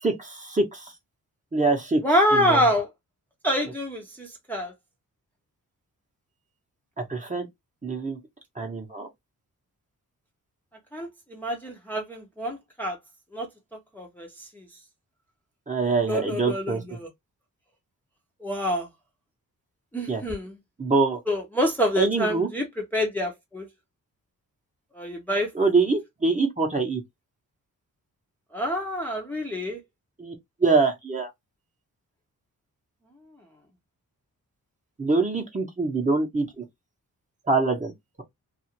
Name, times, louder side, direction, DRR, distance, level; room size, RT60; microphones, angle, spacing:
voice 1, 0.0-0.9 1.5-2.0 2.3-2.7 7.0-7.5 7.8-8.2 8.6-9.1 15.7-16.8 20.1-20.2 20.8-21.2 22.0-22.5 25.5-27.0 30.2-30.3 30.6-31.3 35.0-36.6 37.5-37.9, right 3 dB, 20° right, 0.8 m, -24 dB
voice 2, 2.0-2.9 3.4-4.7 10.9-13.0 13.3-13.5 14.0-14.3 14.6-14.7 16.1-17.1 18.4-18.9 19.9-20.5 21.3-23.7 24.9-25.5 28.5-29.8, equal, 5° left, 0.7 m, -26 dB
2.4 x 2.4 x 2.8 m
wide cardioid pair, 100°, 35 cm